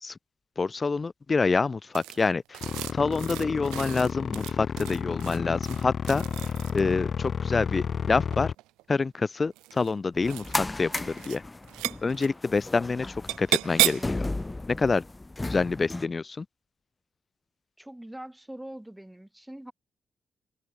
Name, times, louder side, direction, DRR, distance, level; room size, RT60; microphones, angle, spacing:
voice 1, 0.6-2.6 2.9-8.5 8.9-11.4 12.0-14.2 14.7-15.0 15.4-16.4, left 4 dB, 40° left, 1.2 m, -27 dB
sound 1, 1.9-7.0 8.2-8.8 9.5-9.9 10.2-10.6 10.9-11.4 11.6-12.3 13.3-14.2, right 18 dB, 85° right, 0.4 m, -32 dB
sound 2, 2.6-8.5, left 7 dB, 60° left, 1.5 m, -32 dB
sound 3, 10.1-16.1, left 2 dB, 25° left, 2.6 m, -35 dB
voice 2, 17.8-19.7, right 1 dB, 10° right, 2.5 m, -43 dB
hypercardioid pair, 40°, 0 cm